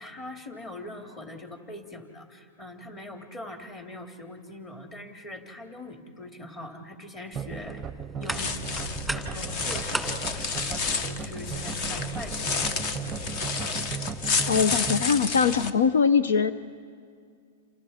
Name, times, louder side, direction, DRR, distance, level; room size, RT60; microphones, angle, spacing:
voice 1, 0.0-7.8 8.1-8.6 9.1-12.6, left 1 dB, 25° left, 3 dB, 2.8 m, -42 dB
sound 1, 7.3-12.5, right 1 dB, 5° left, 1.9 m, -38 dB
sound 2, 7.4-15.0, right 7 dB, 20° right, 0.7 m, -37 dB
sound 3, 8.2-15.7, left 5 dB, 45° left, 1.3 m, -30 dB
voice 2, 14.5-16.5, left 6 dB, 85° left, 13 dB, 0.8 m, -22 dB
28.5 x 28.0 x 4.4 m, 2.2 s
hypercardioid pair, 130°, 0 cm